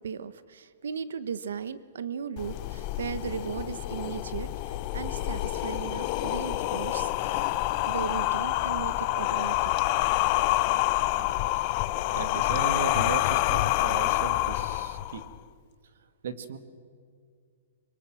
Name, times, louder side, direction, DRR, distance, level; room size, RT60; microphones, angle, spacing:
voice 1, 0.0-7.5 7.9-9.7, right 7 dB, 85° right, 15 dB, 1.0 m, -37 dB
sound 1, 2.4-15.3, left 17 dB, 30° left, 0.6 m, -27 dB
voice 2, 12.1-15.2 16.2-16.6, right 5 dB, 65° right, 11 dB, 1.8 m, -36 dB
25.0 x 23.0 x 7.7 m, 2.2 s
hypercardioid pair, 165°, 0 cm